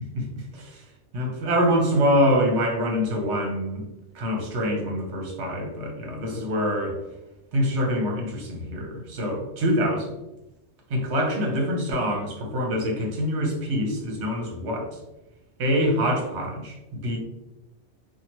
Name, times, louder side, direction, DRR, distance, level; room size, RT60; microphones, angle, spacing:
voice 1, 0.1-0.8 1.1-3.9 4.1-7.0 7.5-10.2 10.9-15.0 15.6-17.2, equal, 70° right, 1 dB, 1.0 m, -25 dB
2.8 x 2.3 x 2.8 m, 0.96 s
omnidirectional pair, 1.2 m